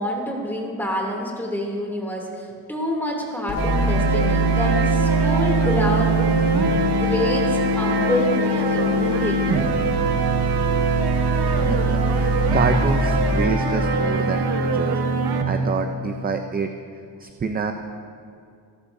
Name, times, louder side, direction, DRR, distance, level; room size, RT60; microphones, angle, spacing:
voice 1, 0.0-6.3 6.9-9.6, left 1 dB, 5° left, -2 dB, 2.6 m, -27 dB
sound 1, 3.5-13.5, left 1 dB, 55° left, 2.3 m, -27 dB
sound 2, 3.6-15.4, right 3 dB, 65° right, 1.3 m, -22 dB
voice 2, 11.5-15.0 15.4-16.7 17.2-17.7, right 5 dB, 20° right, 5 dB, 0.5 m, -27 dB
28.0 x 11.5 x 2.7 m, 2.4 s
cardioid pair, 135°, 42 cm